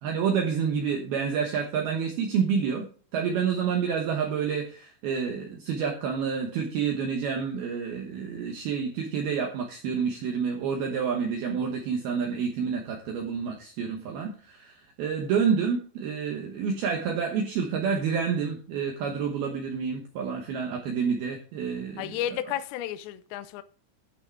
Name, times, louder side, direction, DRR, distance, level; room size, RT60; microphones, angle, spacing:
voice 1, 0.0-2.9 3.1-22.2, right 6 dB, 70° right, 2.6 m, -28 dB
voice 2, 22.0-23.6, left 11 dB, 80° left, 2.8 m, -32 dB
12.0 x 6.3 x 4.6 m
omnidirectional pair, 5.5 m